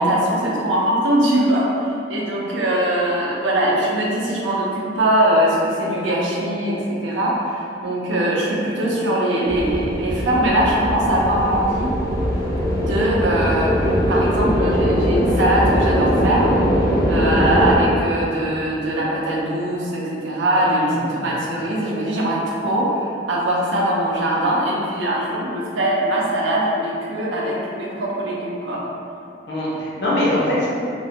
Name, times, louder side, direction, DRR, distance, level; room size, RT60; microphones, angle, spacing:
voice 1, 0.0-11.9 12.7-16.6 17.1-28.8, right 1 dB, 85° right, -4 dB, 0.5 m, -21 dB
sound 1, 9.5-17.8, equal, 20° left, 0.3 m, -20 dB
voice 2, 20.5-21.4 29.5-30.7, left 1 dB, 65° left, -7 dB, 0.7 m, -23 dB
2.9 x 2.1 x 2.7 m, 2.6 s
head